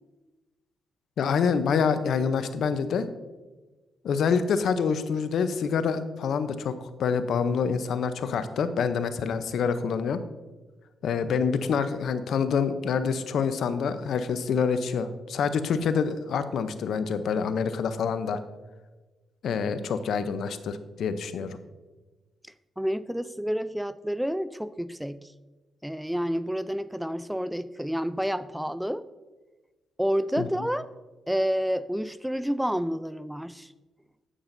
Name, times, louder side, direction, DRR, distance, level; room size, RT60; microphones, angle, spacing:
voice 1, 1.2-3.1 4.0-10.2 11.0-18.4 19.4-21.6 30.4-30.5, left 6 dB, 70° left, 11 dB, 0.6 m, -26 dB
voice 2, 22.8-25.3 25.8-29.0 30.0-30.9 31.3-33.7, equal, 5° right, 15 dB, 0.3 m, -29 dB
9.9 x 8.8 x 2.6 m, 1.2 s
cardioid pair, 70°, 0 cm